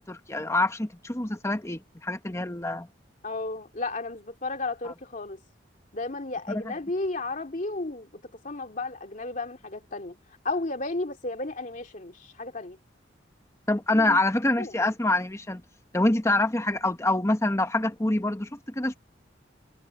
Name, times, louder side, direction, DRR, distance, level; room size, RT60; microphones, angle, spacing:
voice 1, 0.0-2.9 4.8-4.9 6.5-6.7 13.7-15.6 15.9-18.9, left 2 dB, 15° left, 1.2 m, -26 dB
voice 2, 3.2-5.4 5.9-10.2 10.4-12.8 13.9-14.2 14.6-14.8, left 2 dB, 45° left, 2.5 m, -33 dB
head